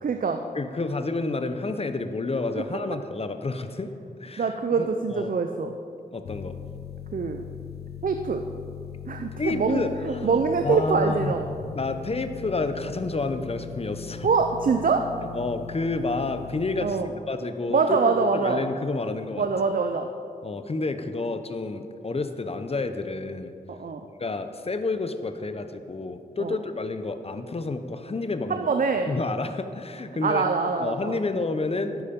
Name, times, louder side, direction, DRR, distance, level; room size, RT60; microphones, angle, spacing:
voice 1, 0.0-0.4 4.4-5.7 7.1-7.4 8.0-8.4 9.1-11.4 14.2-15.1 16.8-17.1 17.7-18.6 19.4-20.1 23.7-24.0 26.4-26.5 28.5-29.1 30.2-31.2, right 5 dB, 60° right, 5 dB, 0.6 m, -24 dB
voice 2, 0.5-3.9 4.2-5.4 6.1-6.6 9.4-11.3 11.7-14.3 15.3-17.0 17.3-19.5 20.4-23.5 24.2-28.7 29.0-30.5 30.8-32.0, left 3 dB, 40° left, 9 dB, 0.8 m, -30 dB
sound 1, 6.2-16.9, left 9 dB, 90° left, 0.4 m, -39 dB
10.5 x 8.5 x 5.3 m, 2.5 s
cardioid pair, 60°, 16 cm